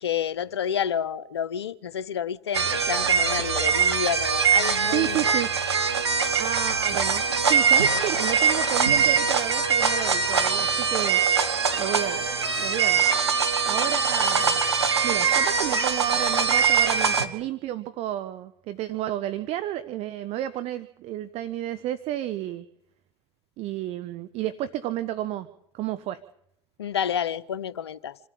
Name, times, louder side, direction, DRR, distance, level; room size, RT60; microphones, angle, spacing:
voice 1, 0.0-5.4 26.8-28.2, left 8 dB, 80° left, 1.0 m, -29 dB
sound 1, 2.5-17.3, right 6 dB, 90° right, 1.8 m, -22 dB
voice 2, 4.8-5.5 6.3-11.2 11.8-12.3 12.6-13.4 13.7-14.6 15.0-22.6 23.6-25.5 25.7-26.2, right 13 dB, 50° right, 1.1 m, -31 dB
27.0 x 14.5 x 8.6 m
hypercardioid pair, 75°, 14 cm